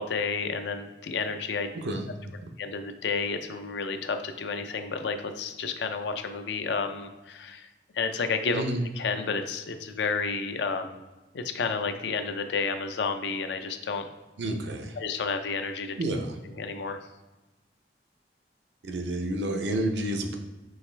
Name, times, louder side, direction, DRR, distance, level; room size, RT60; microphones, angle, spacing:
voice 1, 0.0-1.7 2.6-8.6 8.9-11.0 11.3-14.1 14.9-16.0 16.4-17.0, left 4 dB, 80° left, 8 dB, 0.5 m, -31 dB
voice 2, 14.4-14.9 16.0-16.3 18.8-20.4, right 1 dB, 80° right, 4 dB, 0.6 m, -29 dB
4.7 x 3.2 x 3.2 m, 1.1 s
head